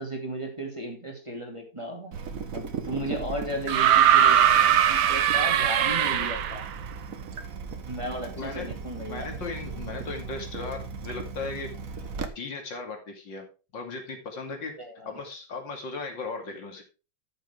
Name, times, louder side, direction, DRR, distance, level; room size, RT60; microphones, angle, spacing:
voice 1, 0.0-2.1 2.5-6.7 7.8-9.3 14.8-15.2, right 1 dB, 15° right, 1 dB, 2.6 m, -35 dB
Water tap faucet / Drip, 2.1-12.3, right 5 dB, 50° right, 1.5 m, -37 dB
sound 1, 3.7-6.7 8.0-8.1, right 10 dB, 90° right, 1.7 m, -20 dB
voice 2, 8.4-8.7 9.0-11.7 12.3-13.5 13.7-14.8 15.1-16.8, left 3 dB, 75° left, 3 dB, 3.1 m, -36 dB
14.0 x 7.0 x 3.4 m, 0.31 s
omnidirectional pair, 2.1 m